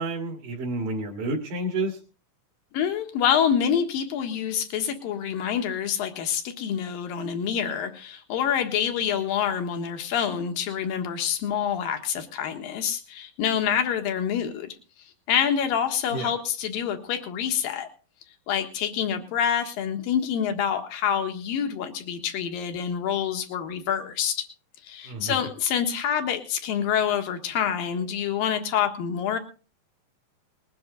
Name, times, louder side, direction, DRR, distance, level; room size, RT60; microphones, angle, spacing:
voice 1, 0.0-2.0 16.1-16.3 25.1-25.4, right 2 dB, 75° right, -1 dB, 3.8 m, -30 dB
voice 2, 2.7-14.8 15.3-17.9 18.5-24.5 24.8-29.4, left 8 dB, 85° left, 6 dB, 3.2 m, -27 dB
20.5 x 10.5 x 4.0 m, 0.36 s
omnidirectional pair, 4.0 m